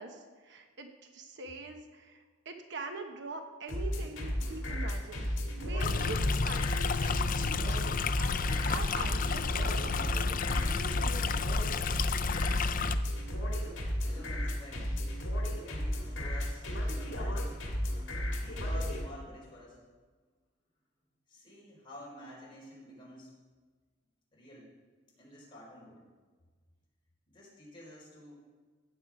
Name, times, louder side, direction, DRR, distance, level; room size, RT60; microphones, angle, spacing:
voice 1, 0.0-5.3 5.6-11.5, right 3 dB, 60° right, 5 dB, 1.1 m, -44 dB
sound 1, 3.7-19.0, equal, 65° left, 2.3 m, -33 dB
Stream, 5.8-12.9, left 5 dB, 40° left, 0.5 m, -31 dB
voice 2, 14.0-15.0 15.6-17.6 18.3-19.8 21.3-23.3 24.3-24.7 25.2-26.0 27.3-28.3, equal, 25° left, -4 dB, 4.4 m, -50 dB
15.5 x 8.7 x 4.8 m, 1.4 s
head